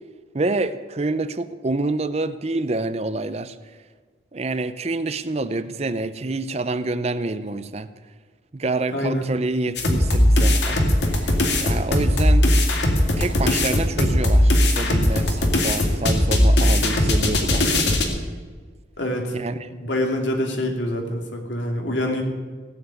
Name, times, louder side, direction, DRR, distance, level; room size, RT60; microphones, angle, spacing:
voice 1, 0.3-3.5 4.3-7.9 8.5-11.3 11.6-12.4 13.2-17.9 19.3-19.5, right 2 dB, 35° right, 13 dB, 0.6 m, -27 dB
voice 2, 8.9-9.3 19.0-19.4 19.7-22.2, left 1 dB, 90° left, 2 dB, 2.7 m, -25 dB
sound 1, 9.8-18.1, left 1 dB, 70° left, 2.3 m, -19 dB
17.5 x 7.4 x 9.2 m, 1.5 s
head